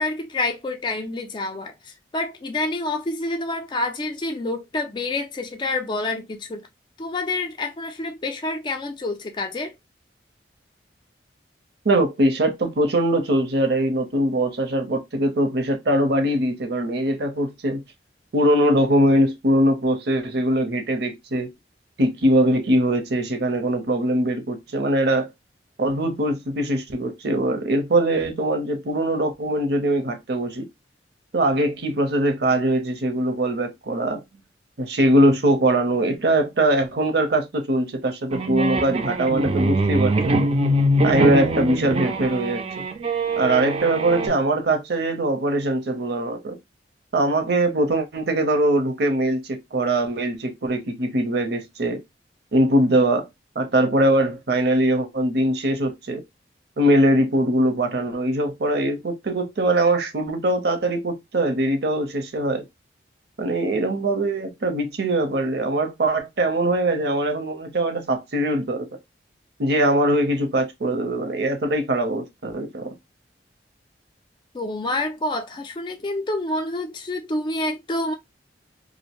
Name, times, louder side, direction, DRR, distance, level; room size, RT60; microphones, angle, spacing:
voice 1, 0.0-6.7 7.0-9.7 74.5-78.1, left 2 dB, 25° left, 0.4 m, -28 dB
voice 2, 11.8-17.8 18.3-21.5 22.0-25.3 25.8-30.6 31.3-34.2 34.8-40.3 41.0-42.6 43.4-46.6 47.1-52.0 52.5-53.2 53.6-56.2 56.8-62.6 63.4-68.9 69.6-72.9, right 1 dB, 65° right, 0.7 m, -22 dB
sound 1, 38.3-44.3, right 1 dB, 35° right, 0.4 m, -23 dB
2.5 x 2.0 x 2.8 m
head